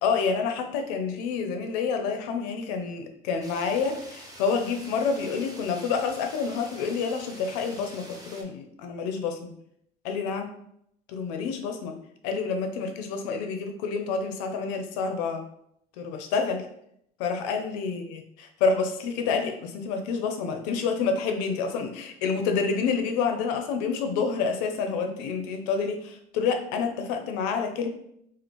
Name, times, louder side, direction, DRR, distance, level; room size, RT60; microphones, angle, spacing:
voice 1, 0.0-9.5 10.0-10.5 11.1-12.0 12.2-15.4 16.0-16.7 17.2-27.9, left 5 dB, 85° left, 5 dB, 0.6 m, -28 dB
sound 1, 3.4-8.4, right 1 dB, 20° right, 1.1 m, -46 dB
2.9 x 2.4 x 4.3 m, 0.73 s
supercardioid pair, 80°, 20 cm